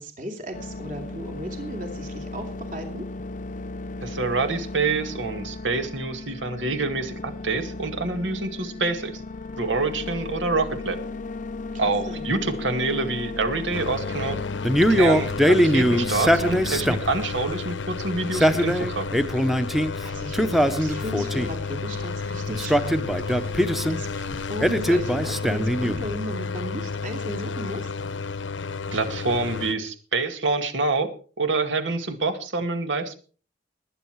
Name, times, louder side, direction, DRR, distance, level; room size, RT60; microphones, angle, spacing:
voice 1, 0.0-3.1 11.7-12.3 20.0-27.9, equal, 45° right, 4 dB, 2.9 m, -36 dB
sound 1, 0.5-17.0, left 3 dB, 45° left, 0.6 m, -36 dB
voice 2, 4.0-9.2 9.6-11.0 11.8-14.4 14.9-19.1 28.9-31.1 31.4-33.1, right 3 dB, 85° right, 8 dB, 2.1 m, -26 dB
sound 2, 13.7-29.7, left 4 dB, 90° left, 0.9 m, -32 dB
Male speech man speaking, 14.6-17.2 18.2-19.9 20.3-21.6 22.5-24.0 24.6-26.1, equal, ahead, 0.8 m, -21 dB
20.0 x 9.7 x 4.7 m, 0.40 s
head